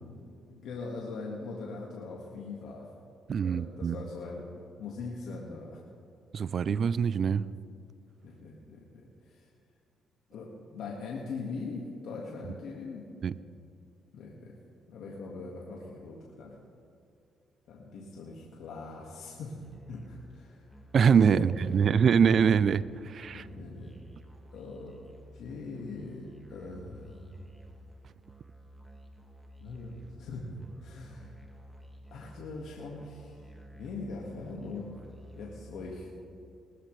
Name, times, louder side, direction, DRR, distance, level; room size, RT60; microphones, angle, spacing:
voice 1, 0.5-2.9 3.4-4.4 4.8-5.8 8.2-9.4 10.3-13.0 14.1-14.6 14.9-16.6 17.7-19.6 19.9-20.6 21.3-22.0 23.3-23.9 24.5-25.0 25.3-27.4 29.6-31.3 32.1-33.4 33.7-35.0 35.4-36.1, left 3 dB, 75° left, -3 dB, 1.8 m, -41 dB
voice 2, 3.3-4.0 6.3-7.5 13.2-13.4 20.9-23.5, right 7 dB, 55° right, 18 dB, 0.4 m, -24 dB
Musical instrument, 19.6-36.1, right 1 dB, 5° right, 1.9 m, -53 dB
20.0 x 12.5 x 3.3 m, 2.5 s
cardioid pair, 90°, 0 cm